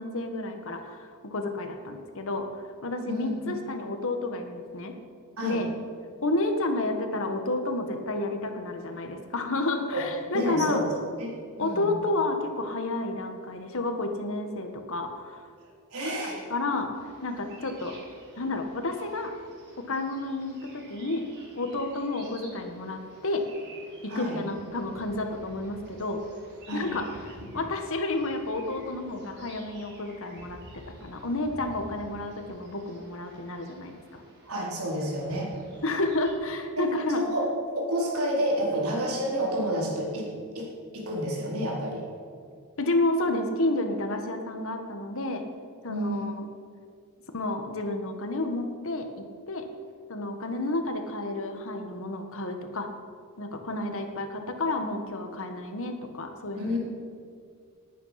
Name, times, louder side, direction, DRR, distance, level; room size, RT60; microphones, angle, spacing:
voice 1, 0.0-2.5 2.8-4.9 5.4-5.7 6.2-10.8 11.6-15.4 16.2-16.9 17.2-18.0 18.4-19.3 19.8-21.2 21.5-23.4 24.0-26.2 26.7-34.2 35.8-37.2 42.8-45.4 45.8-46.4 47.3-49.1 49.5-49.7 50.1-52.9 53.4-56.8, left 2 dB, 65° left, 5 dB, 1.6 m, -30 dB
voice 2, 3.1-3.6 5.4-5.6 9.9-10.0 10.3-10.8 11.2-11.9 15.9-16.4 24.1-24.4 26.7-26.9 34.4-35.6 36.8-37.5 37.7-40.7 40.9-42.0 45.9-46.3 56.6-56.8, equal, 75° right, -3 dB, 4.2 m, -30 dB
sound 1, 16.9-36.3, right 1 dB, 50° right, 4.5 m, -51 dB
19.5 x 9.4 x 5.9 m, 2.2 s
head